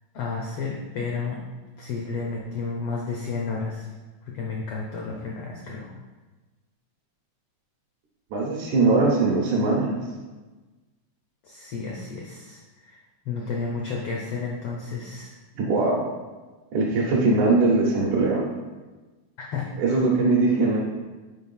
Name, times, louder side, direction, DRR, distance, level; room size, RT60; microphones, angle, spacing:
voice 1, 0.1-1.4 1.8-3.9 4.2-5.9 11.4-13.0 13.2-15.3 19.4-19.7, left 4 dB, 80° left, -1 dB, 1.3 m, -32 dB
voice 2, 8.3-10.0 15.6-16.0 16.7-18.4 19.8-20.8, right 3 dB, 75° right, -5 dB, 2.4 m, -21 dB
6.2 x 4.7 x 5.5 m, 1.3 s
omnidirectional pair, 3.7 m